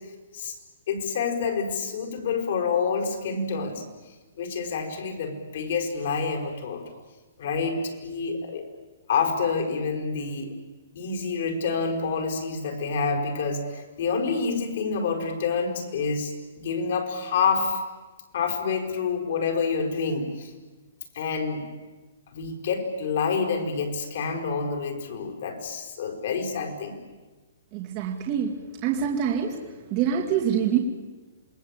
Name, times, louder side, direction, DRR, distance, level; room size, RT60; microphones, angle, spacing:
voice 1, 0.9-3.8 4.4-6.8 7.4-8.7 9.1-10.5 10.9-17.8 18.3-20.5 21.1-21.6 22.3-27.0, left 5 dB, 50° left, 3 dB, 5.2 m, -28 dB
voice 2, 27.7-29.6 29.9-30.8, right 8 dB, 25° right, -1 dB, 2.5 m, -25 dB
27.5 x 21.0 x 9.1 m, 1.2 s
hypercardioid pair, 170°, 0 cm